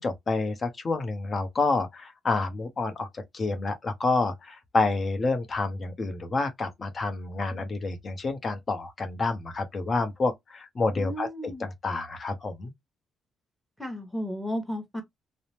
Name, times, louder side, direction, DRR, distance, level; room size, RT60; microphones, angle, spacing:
voice 1, 0.0-12.7, left 3 dB, 40° left, 0.8 m, -29 dB
voice 2, 11.0-11.7 13.8-15.0, equal, ahead, 1.2 m, -33 dB
2.7 x 2.0 x 3.1 m
cardioid pair, 90°, 0 cm